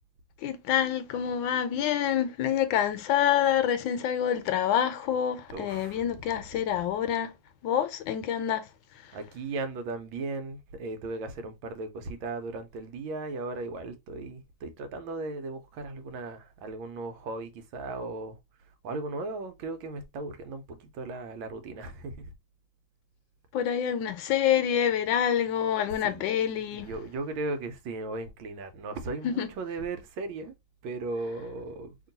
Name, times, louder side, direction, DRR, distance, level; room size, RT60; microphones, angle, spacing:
voice 1, 0.4-7.3 7.6-8.7 9.0-9.1 23.5-26.9 29.2-29.5, left 9 dB, 80° left, 1.3 m, -27 dB
voice 2, 5.5-6.0 9.1-18.4 18.8-22.3 26.0-26.2 26.7-30.5 30.8-32.0, right 3 dB, 85° right, 1.5 m, -36 dB
3.0 x 2.9 x 3.9 m
omnidirectional pair, 2.2 m